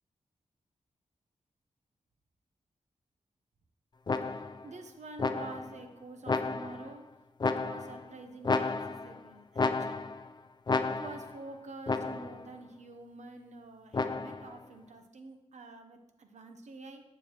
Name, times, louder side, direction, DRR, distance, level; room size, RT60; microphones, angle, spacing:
sound 1, 4.1-4.7 5.2-5.8 6.3-6.9 7.4-8.1 8.4-9.2 9.6-10.3 10.7-11.4 11.9-12.5 13.9-14.5, left 4 dB, 35° left, 0.4 m, -32 dB
voice 1, 4.3-7.0 7.4-10.1 10.9-17.0, right 3 dB, 75° right, 6 dB, 0.9 m, -47 dB
9.6 x 6.9 x 3.0 m, 0.94 s
wide cardioid pair, 75°, 12 cm